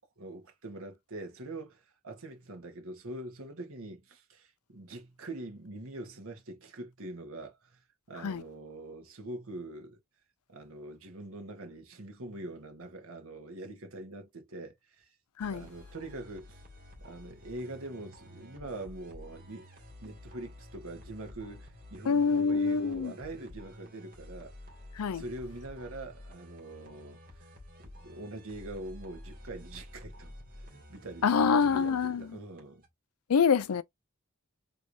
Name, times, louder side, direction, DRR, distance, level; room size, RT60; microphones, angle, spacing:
voice 1, 0.0-7.8 8.1-10.0 10.5-15.1 15.5-16.6 17.0-19.7 20.0-24.6 25.1-27.2 27.8-32.8, right 2 dB, 65° right, 1.4 m, -43 dB
sound 1, 15.4-32.9, left 1 dB, 40° right, 2.4 m, -51 dB
voice 2, 22.1-23.1 25.0-25.2 31.2-32.3 33.3-33.8, left 5 dB, 85° left, 0.5 m, -26 dB
4.7 x 3.4 x 2.7 m
head